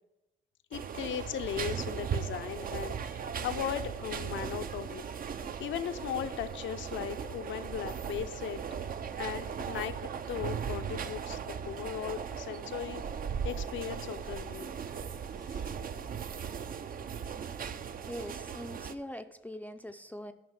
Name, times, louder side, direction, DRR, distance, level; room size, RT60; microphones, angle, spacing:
voice 1, 0.7-13.0 13.4-14.7 15.5-15.6, left 9 dB, 75° left, 11 dB, 0.7 m, -38 dB
sound 1, 0.7-19.0, right 7 dB, 45° right, 0.6 m, -38 dB
voice 2, 18.0-20.3, left 1 dB, 5° left, 8 dB, 0.5 m, -42 dB
9.4 x 5.6 x 7.3 m, 1.0 s
cardioid pair, 90°, 20 cm